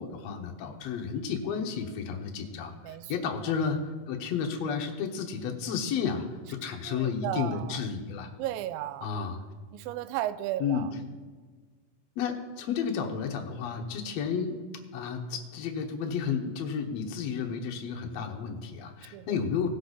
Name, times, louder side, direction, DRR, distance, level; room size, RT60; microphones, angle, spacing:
voice 1, 0.0-3.8 4.1-8.3 9.0-9.4 10.6-10.9 12.2-14.6 14.9-19.7, left 6 dB, 65° left, 2 dB, 1.8 m, -32 dB
voice 2, 6.9-7.8 8.4-9.1 9.7-10.9 19.1-19.4, right 13 dB, 90° right, 12 dB, 2.3 m, -34 dB
18.0 x 6.5 x 4.0 m, 1.5 s
omnidirectional pair, 4.0 m